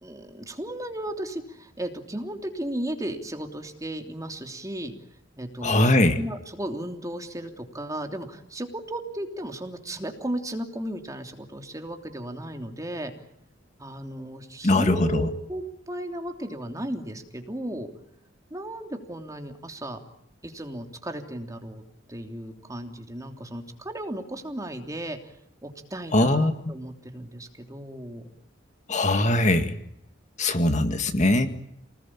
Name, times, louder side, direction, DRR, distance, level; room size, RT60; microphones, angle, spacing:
voice 1, 0.0-4.9 5.4-13.1 13.8-17.9 18.5-20.0 20.4-21.8 22.1-25.3 25.6-28.3, right 1 dB, 20° right, 4 dB, 3.1 m, -35 dB
voice 2, 5.6-6.2 14.6-15.3 26.1-26.5 28.9-29.8 30.4-31.5, left 1 dB, 40° left, 8 dB, 2.0 m, -21 dB
29.0 x 20.0 x 8.8 m, 0.75 s
head